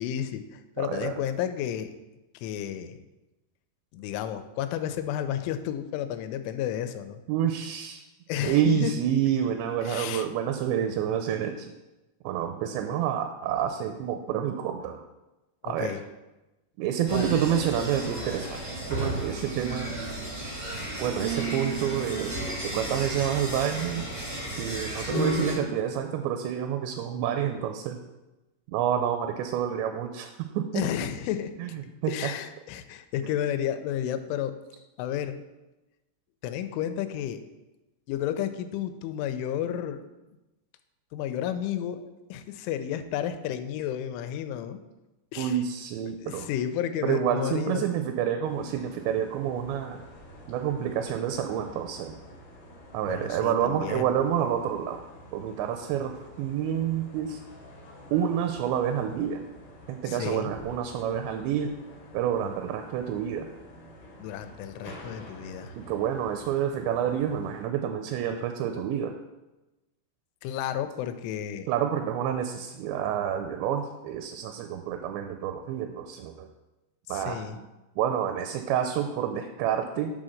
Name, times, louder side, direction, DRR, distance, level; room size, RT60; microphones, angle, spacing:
voice 1, 0.0-1.9 2.3-3.0 3.9-7.2 8.3-8.9 9.8-10.3 15.6-16.0 17.1-17.4 30.7-31.5 32.1-34.6 35.0-35.4 36.4-37.4 38.1-40.1 41.1-44.8 45.3-45.6 46.2-47.9 53.1-54.1 60.0-60.5 64.2-65.7 70.4-71.7 77.1-77.6, left 10 dB, 85° left, 10 dB, 3.0 m, -32 dB
voice 2, 0.8-1.2 7.3-8.0 8.4-11.7 12.2-15.0 15.6-16.0 16.8-20.0 21.0-22.3 22.6-24.1 24.6-28.0 28.7-30.3 30.6-30.8 31.6-31.7 32.0-32.1 45.4-46.5 47.0-50.0 50.5-52.2 52.9-55.0 55.3-57.4 58.1-59.4 59.9-61.7 62.1-63.5 65.8-69.1 71.7-76.5 77.1-77.4 78.0-80.1, right 9 dB, 85° right, 6 dB, 2.5 m, -28 dB
sound 1, 17.1-25.5, right 1 dB, 55° right, 0.3 m, -33 dB
sound 2, 48.4-67.6, equal, 70° left, 1.2 m, -49 dB
7.7 x 3.8 x 6.4 m, 1.0 s
omnidirectional pair, 5.4 m